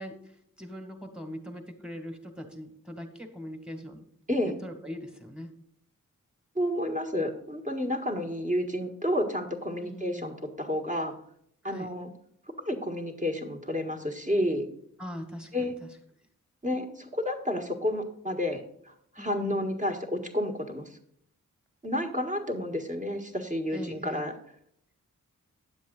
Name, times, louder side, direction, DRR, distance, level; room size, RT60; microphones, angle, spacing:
voice 1, 0.0-4.0 4.4-5.5 9.8-10.3 11.6-11.9 15.0-15.9 19.2-19.6 23.7-24.2, equal, 5° right, 5 dB, 1.8 m, -41 dB
voice 2, 6.5-11.1 11.6-12.1 12.6-14.7 15.5-15.7 16.6-21.0 21.8-24.3, left 1 dB, 20° right, 3 dB, 1.6 m, -30 dB
10.0 x 7.3 x 3.9 m, 0.70 s
wide cardioid pair, 70°, 34 cm